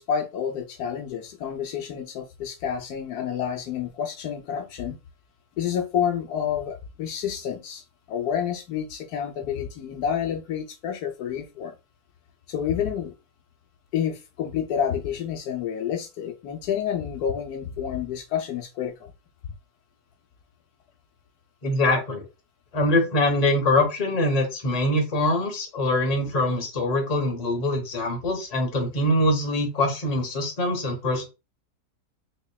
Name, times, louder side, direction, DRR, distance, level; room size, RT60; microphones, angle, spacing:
voice 1, 0.0-5.0 5.6-11.7 12.5-13.1 13.9-19.1, left 8 dB, 75° left, 1.1 m, -29 dB
voice 2, 21.6-22.2 22.7-31.3, left 1 dB, 30° left, 0.9 m, -23 dB
4.4 x 2.9 x 2.2 m
omnidirectional pair, 1.7 m